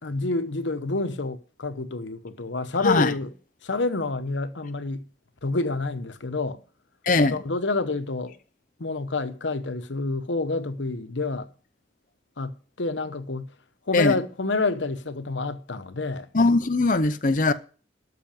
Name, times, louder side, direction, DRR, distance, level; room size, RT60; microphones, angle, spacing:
voice 1, 0.0-3.3 3.6-5.1 5.4-6.6 7.3-8.3 8.8-11.5 12.4-13.5 13.9-16.3, left 3 dB, 90° left, 1.0 m, -28 dB
voice 2, 7.1-7.4 13.9-14.2 16.3-17.5, left 3 dB, 45° left, 0.7 m, -20 dB
13.0 x 6.0 x 9.0 m
head